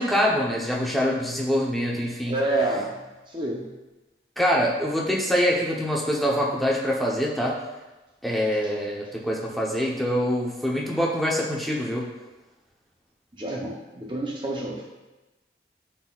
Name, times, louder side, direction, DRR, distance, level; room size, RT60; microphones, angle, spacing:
voice 1, 0.0-2.3 4.4-7.6 8.2-12.1, equal, ahead, -3 dB, 0.8 m, -24 dB
voice 2, 2.3-3.7 8.6-8.7 13.3-14.9, right 2 dB, 25° right, -1 dB, 0.7 m, -29 dB
12.5 x 4.2 x 2.4 m, 1.1 s
head